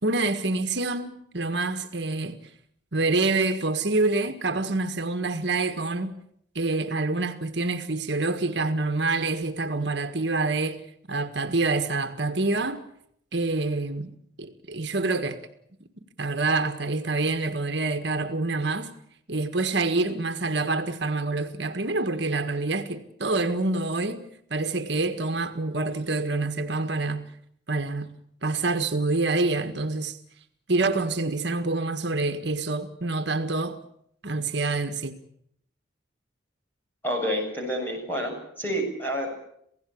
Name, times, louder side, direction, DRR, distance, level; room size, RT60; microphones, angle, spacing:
voice 1, 0.0-2.4 2.9-6.2 6.5-10.8 11.1-12.8 13.3-14.1 14.4-15.4 16.2-18.9 19.3-27.3 27.7-28.1 28.4-30.2 30.7-33.8 34.2-35.2, right 3 dB, 65° right, 1.7 m, -26 dB
voice 2, 37.0-39.3, equal, 10° left, 7.7 m, -29 dB
28.0 x 17.0 x 8.6 m
head